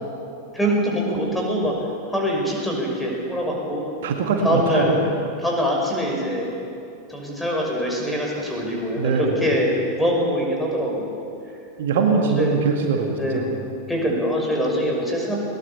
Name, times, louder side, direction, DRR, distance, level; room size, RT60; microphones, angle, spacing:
voice 1, 0.5-1.7 2.1-3.8 4.4-4.9 5.4-6.5 7.1-11.2 11.9-12.5 13.1-13.4 13.9-15.4, equal, 5° left, -1 dB, 5.8 m, -23 dB
voice 2, 4.0-5.0 9.0-9.4 11.8-13.5, right 5 dB, 55° right, 2 dB, 2.0 m, -22 dB
20.5 x 18.5 x 6.9 m, 2.6 s
figure-of-eight pair, 90°, 0 cm